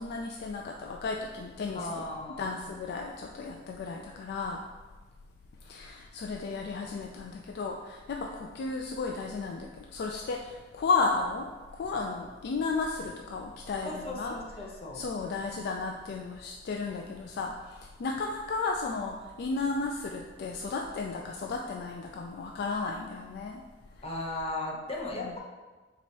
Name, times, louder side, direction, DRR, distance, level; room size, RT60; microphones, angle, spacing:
voice 1, 0.0-2.1 2.4-4.6 5.7-11.5 11.8-14.3 14.9-23.6 25.2-25.3, left 4 dB, 55° left, 1 dB, 0.3 m, -34 dB
voice 2, 1.7-2.5 13.8-15.0 24.0-25.4, left 2 dB, 30° left, -2 dB, 0.7 m, -36 dB
4.0 x 2.9 x 4.5 m, 1.3 s
head